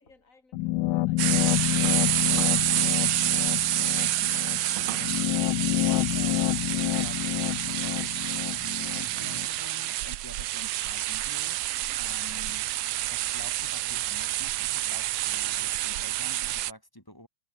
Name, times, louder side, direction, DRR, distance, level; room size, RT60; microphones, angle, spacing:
voice 1, 0.0-2.9 3.8-4.2 5.7-6.1, left 3 dB, 40° left, 5.0 m, -61 dB
sound 1, 0.5-9.5, left 17 dB, 75° left, 1.0 m, -28 dB
sound 2, 1.2-16.7, right 14 dB, 85° right, 1.6 m, -28 dB
voice 2, 3.6-3.9 5.9-8.1 8.4-11.6 12.0-12.7 13.1-17.3, left 1 dB, 10° left, 4.9 m, -47 dB
omnidirectional pair, 2.2 m